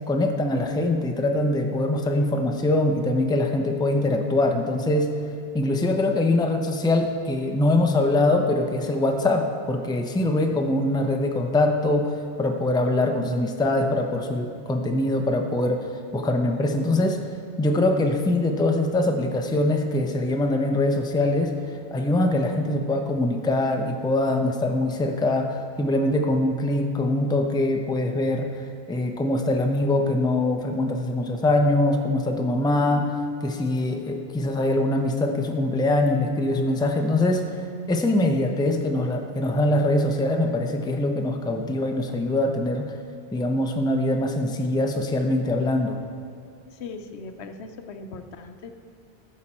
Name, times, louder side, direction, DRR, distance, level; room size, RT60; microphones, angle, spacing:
voice 1, 0.1-5.1 5.5-15.9 16.1-17.3 17.6-21.5 21.9-28.5 28.9-37.6 37.9-42.9 43.3-46.0, left 2 dB, 5° left, 3 dB, 0.5 m, -23 dB
voice 2, 46.8-48.7, left 4 dB, 85° left, 8 dB, 1.0 m, -39 dB
14.5 x 5.7 x 4.3 m, 2.5 s
omnidirectional pair, 1.1 m